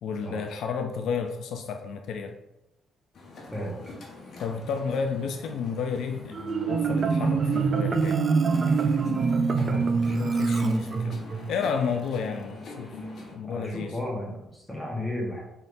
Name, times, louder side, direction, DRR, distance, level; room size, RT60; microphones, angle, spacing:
voice 1, 0.0-2.4 4.4-8.2 9.7-11.2 11.5-12.9 13.3-14.0, left 6 dB, 75° left, 5 dB, 0.4 m, -31 dB
sound 1, 3.1-13.3, left 2 dB, 60° left, 1.2 m, -43 dB
voice 2, 3.5-3.9 4.3-4.4 9.6-10.2 13.4-15.4, left 1 dB, 10° left, -2 dB, 1.4 m, -34 dB
Marimba xylophone, 6.3-11.5, right 5 dB, 45° right, 0.4 m, -24 dB
5.5 x 3.5 x 2.6 m, 0.89 s
cardioid pair, 90°, 0 cm